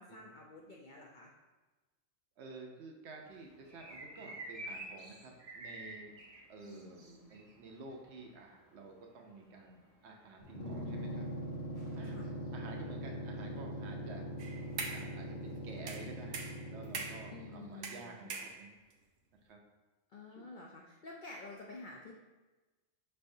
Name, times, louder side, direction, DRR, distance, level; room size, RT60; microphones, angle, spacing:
voice 1, 0.0-1.3 6.6-7.3 12.1-12.3 17.3-18.3 20.1-22.1, left 3 dB, 70° left, -1 dB, 0.4 m, -50 dB
voice 2, 2.4-6.1 6.5-7.0 7.3-11.3 12.0-12.2 12.5-14.2 14.9-18.8 19.4-19.6 20.3-20.5, right 3 dB, 65° right, 2 dB, 0.8 m, -51 dB
sound 1, 3.2-16.5, right 1 dB, 40° right, 0.5 m, -53 dB
sound 2, 10.4-17.8, equal, 35° left, 0.9 m, -42 dB
sound 3, 14.4-15.1 15.9-17.3 17.8-18.9, right 4 dB, 90° right, 1.0 m, -42 dB
5.4 x 3.3 x 2.6 m, 1.2 s
omnidirectional pair, 1.4 m